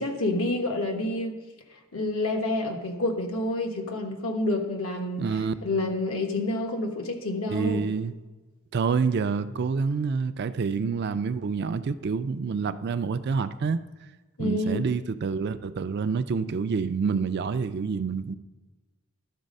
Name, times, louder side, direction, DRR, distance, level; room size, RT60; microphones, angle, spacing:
voice 1, 0.0-1.3 1.9-5.2 5.6-7.8 14.4-14.9, left 2 dB, 75° left, 1.2 m, -28 dB
voice 2, 5.2-5.5 7.5-8.1 8.7-13.8 14.4-18.3, right 5 dB, 50° right, 0.4 m, -27 dB
12.0 x 4.1 x 5.3 m
head